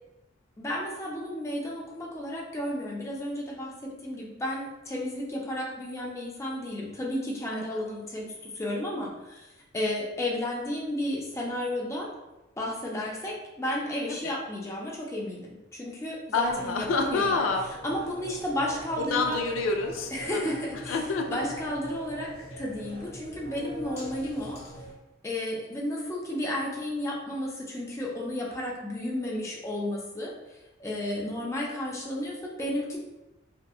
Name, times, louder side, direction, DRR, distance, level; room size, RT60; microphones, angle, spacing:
voice 1, 0.6-12.1 12.6-17.4 17.8-19.4 20.1-21.0 21.3-22.3 22.6-24.6 25.2-30.3 30.8-33.0, left 1 dB, 15° left, -4 dB, 0.4 m, -32 dB
voice 2, 16.3-17.6 19.0-20.5 20.9-21.5, left 4 dB, 80° left, 3 dB, 0.3 m, -28 dB
sound 1, 16.4-24.9, right 1 dB, 35° left, 0.8 m, -43 dB
2.7 x 2.2 x 2.3 m, 0.99 s
head